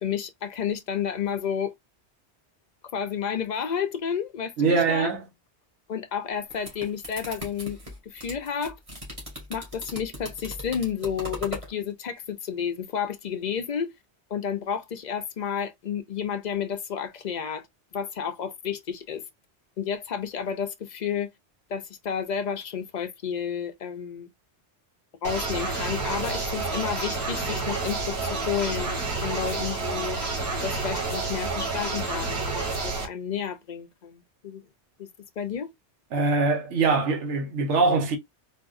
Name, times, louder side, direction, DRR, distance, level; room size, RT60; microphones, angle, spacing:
voice 1, 0.0-1.7 2.9-5.1 5.9-7.8 8.0-8.8 9.5-13.9 14.3-17.7 17.9-19.2 19.8-21.3 21.7-24.3 25.2-30.2 30.6-34.6 35.0-35.1 35.4-35.7, left 8 dB, 55° left, 0.5 m, -31 dB
voice 2, 4.6-5.2 36.1-38.2, right 4 dB, 90° right, 1.1 m, -23 dB
sound 1, 6.3-11.7, equal, 30° right, 1.6 m, -39 dB
sound 2, 25.2-33.1, right 3 dB, 65° right, 1.5 m, -29 dB
3.7 x 2.5 x 2.4 m
omnidirectional pair, 1.2 m